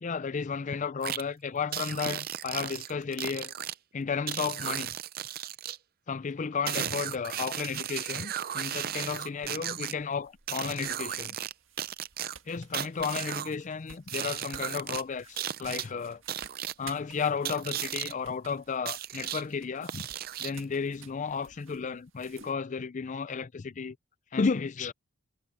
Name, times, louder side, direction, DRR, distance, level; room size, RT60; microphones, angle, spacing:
voice 1, 0.0-3.5 3.9-4.9 6.1-11.4 12.5-16.2 16.8-20.1 20.4-24.0 24.3-24.9, left 5 dB, 35° left, 0.4 m, -33 dB
sound 1, 1.0-1.2 1.7-3.7 4.3-5.8 6.7-9.9 10.5-11.5 11.8-13.5 14.1-15.0 15.4-15.8 16.3-16.7 17.4-18.1 18.9-19.4 19.9-20.6, right 10 dB, 45° right, 0.5 m, -35 dB
sound 2, 9.1-22.5, right 7 dB, 60° right, 1.9 m, -54 dB
head